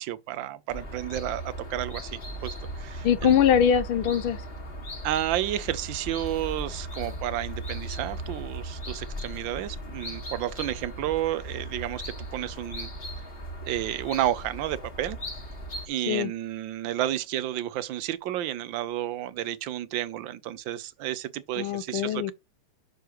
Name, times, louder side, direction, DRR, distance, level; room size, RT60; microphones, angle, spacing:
voice 1, 0.0-3.3 5.0-12.9 13.6-15.2 15.9-22.3, right 13 dB, 70° right, 1.3 m, -31 dB
sound 1, 0.7-15.9, equal, 30° left, 1.7 m, -38 dB
voice 2, 3.0-4.4 16.1-16.3 21.6-22.3, left 9 dB, 75° left, 1.5 m, -22 dB
9.2 x 6.5 x 3.0 m
omnidirectional pair, 2.4 m